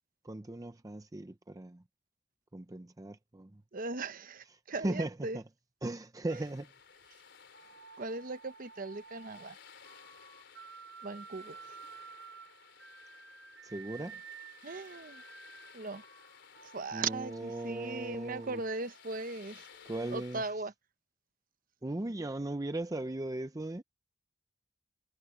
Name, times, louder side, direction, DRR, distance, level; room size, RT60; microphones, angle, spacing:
voice 1, 0.2-1.8 2.5-3.6 4.7-5.4 5.8-6.7 13.6-14.2 16.9-18.6 19.9-20.4 21.8-23.8, right 2 dB, 20° right, 0.5 m, -38 dB
voice 2, 3.7-5.4 6.3-6.4 8.0-9.6 11.0-11.6 14.6-15.2 15.7-16.0 16.6-19.7 20.1-20.7, right 3 dB, 45° right, 0.9 m, -38 dB
sound 1, 6.3-20.5, left 6 dB, 60° left, 4.5 m, -57 dB
sound 2, 7.5-20.3, right 6 dB, 85° right, 5.5 m, -53 dB
head